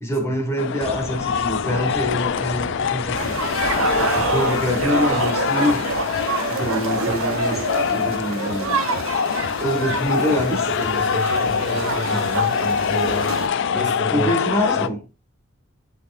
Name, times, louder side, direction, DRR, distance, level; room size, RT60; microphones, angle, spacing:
voice 1, 0.0-3.3 4.1-5.8 6.5-7.6 7.9-8.8 9.6-11.0 14.1-15.0, equal, 10° left, 1.6 m, -25 dB
sound 1, 0.6-14.9, left 7 dB, 55° left, 0.3 m, -24 dB
sound 2, 0.8-5.2, left 2 dB, 30° left, 1.0 m, -36 dB
sound 3, 3.1-13.5, right 3 dB, 70° right, 0.9 m, -26 dB
voice 2, 9.5-13.3 13.7-14.3, right 1 dB, 50° right, 2.1 m, -30 dB
10.5 x 4.4 x 2.5 m
head